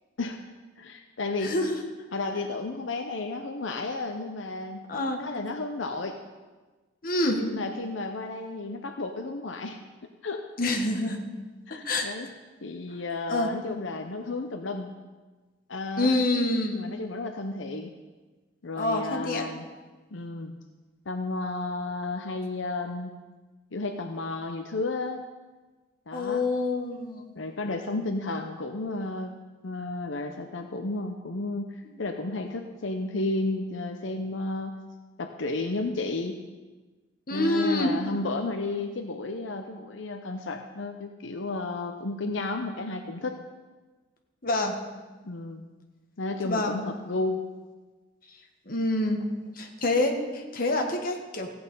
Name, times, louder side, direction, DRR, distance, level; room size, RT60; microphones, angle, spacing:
voice 1, 0.8-1.6 2.1-4.8 5.1-6.2 7.3-9.8 10.2-10.5 11.7-12.3 12.6-14.9 15.7-16.2 16.7-17.9 18.6-19.6 20.1-20.5 21.1-23.1 23.7-25.2 26.1-26.4 27.4-34.8 35.2-36.4 37.3-43.4 45.2-45.6 46.2-47.4, left 2 dB, 80° left, 5 dB, 0.8 m, -32 dB
voice 2, 1.4-1.9 4.9-5.2 7.0-7.4 10.6-11.2 11.8-12.1 13.3-13.5 16.0-16.7 18.8-19.4 26.1-27.3 31.8-32.0 37.3-37.9 44.4-44.8 46.4-46.8 48.7-49.2 49.6-51.5, left 2 dB, 50° left, 3 dB, 1.5 m, -26 dB
15.0 x 8.7 x 5.5 m, 1.3 s
head